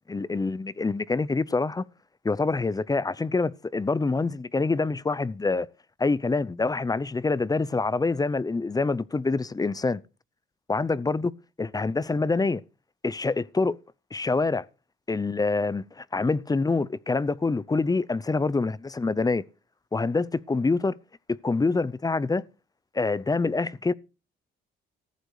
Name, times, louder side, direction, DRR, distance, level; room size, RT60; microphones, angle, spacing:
voice 1, 0.1-1.9 2.2-5.7 6.0-10.0 10.7-11.3 11.6-12.6 13.0-13.8 14.1-14.7 15.1-19.4 19.9-21.0 21.3-22.4 22.9-23.9, left 3 dB, 20° left, 0.7 m, -26 dB
14.5 x 8.0 x 4.8 m
cardioid pair, 90°, 20 cm